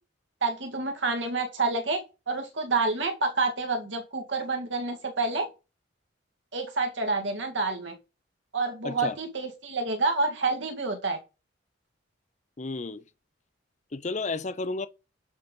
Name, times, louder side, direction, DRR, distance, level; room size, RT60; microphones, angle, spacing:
voice 1, 0.4-5.5 6.5-7.9 8.5-11.2, right 3 dB, 65° right, 2.1 m, -28 dB
voice 2, 8.8-9.1 12.6-13.0 13.9-14.9, left 3 dB, 35° left, 0.6 m, -32 dB
11.0 x 4.0 x 5.3 m
head